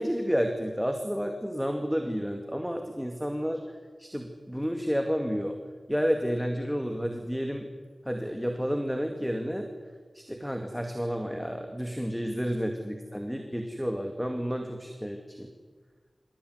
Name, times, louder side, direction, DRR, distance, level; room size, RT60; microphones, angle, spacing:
voice 1, 0.0-3.6 4.0-5.6 5.9-7.7 8.1-9.7 10.1-15.5, equal, ahead, 4 dB, 2.3 m, -30 dB
25.5 x 16.0 x 9.6 m, 1.5 s
wide cardioid pair, 55°, 0 cm